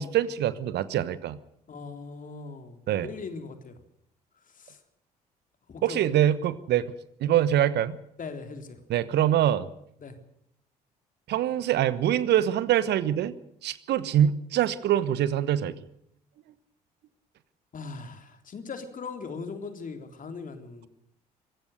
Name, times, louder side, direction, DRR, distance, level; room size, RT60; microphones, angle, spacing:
voice 1, 0.0-1.4 2.9-3.1 5.8-6.9 7.2-8.0 8.9-9.7 11.3-13.3 13.6-15.8, right 11 dB, 60° right, 17 dB, 1.2 m, -24 dB
voice 2, 1.7-3.8 4.5-4.8 5.7-6.0 8.2-8.8 10.0-10.2 17.7-20.9, left 4 dB, 40° left, 7 dB, 3.6 m, -39 dB
25.0 x 15.5 x 6.7 m, 0.73 s
figure-of-eight pair, 50°, 20 cm